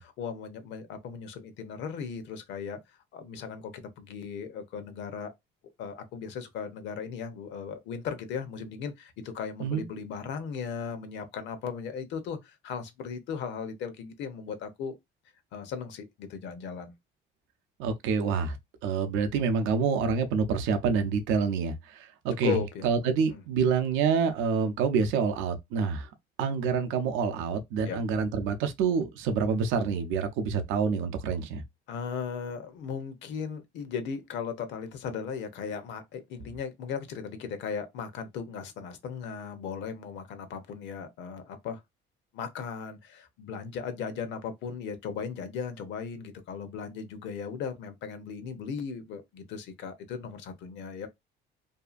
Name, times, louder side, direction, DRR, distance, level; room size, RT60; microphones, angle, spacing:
voice 1, 0.0-5.3 5.8-15.0 15.5-16.9 22.4-22.9 23.3-23.4 27.9-28.0 31.9-41.8 42.3-51.1, left 6 dB, 70° left, 0.7 m, -37 dB
voice 2, 17.8-18.6 18.8-22.6 22.8-26.1 26.4-31.6, right 6 dB, 90° right, 0.5 m, -27 dB
2.7 x 2.4 x 2.4 m
cardioid pair, 120°, 20 cm